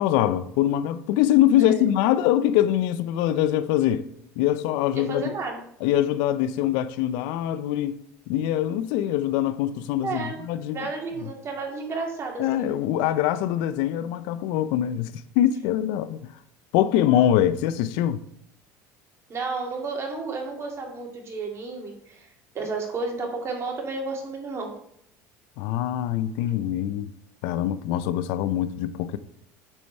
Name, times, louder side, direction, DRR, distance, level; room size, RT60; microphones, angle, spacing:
voice 1, 0.0-4.1 4.4-5.3 5.8-10.9 12.4-16.3 16.7-18.2 25.6-27.1 27.4-29.2, left 12 dB, 70° left, 0.5 m, -23 dB
voice 2, 5.1-5.6 10.0-10.4 10.7-12.8 19.3-22.3 22.5-24.7, right 3 dB, 35° right, 2.1 m, -32 dB
8.9 x 4.6 x 5.4 m
supercardioid pair, 110°, 8 cm